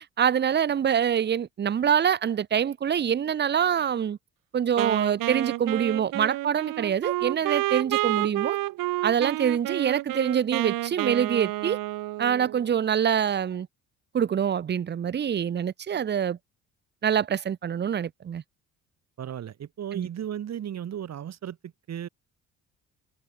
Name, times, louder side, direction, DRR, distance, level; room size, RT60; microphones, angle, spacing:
voice 1, 0.2-4.2 4.5-8.6 9.0-11.8 12.2-13.7 14.1-16.4 17.0-18.4 19.9-20.1, right 8 dB, 30° right, 0.7 m, -25 dB
Wind instrument woodwind instrument, 4.8-12.7, right 17 dB, 75° right, 1.6 m, -30 dB
voice 2, 19.2-22.1, right 10 dB, 50° right, 2.3 m, -35 dB
open air
cardioid pair, 95°, 33 cm